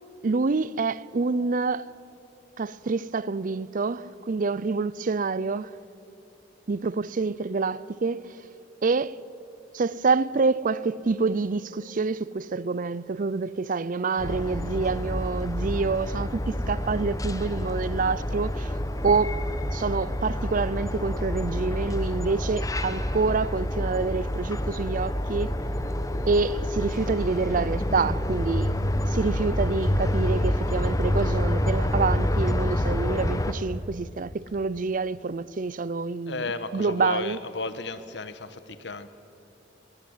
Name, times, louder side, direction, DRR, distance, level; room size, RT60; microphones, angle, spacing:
voice 1, 0.2-1.9 2.6-5.8 6.7-8.4 8.8-9.2 9.7-18.7 19.0-19.4 19.7-25.5 26.3-28.7 29.0-37.4, right 4 dB, 50° right, 0.5 m, -27 dB
sound 1, 14.2-33.5, left 1 dB, 20° left, 1.1 m, -28 dB
voice 2, 36.3-39.1, left 3 dB, 70° left, 1.3 m, -33 dB
21.5 x 20.0 x 9.6 m
head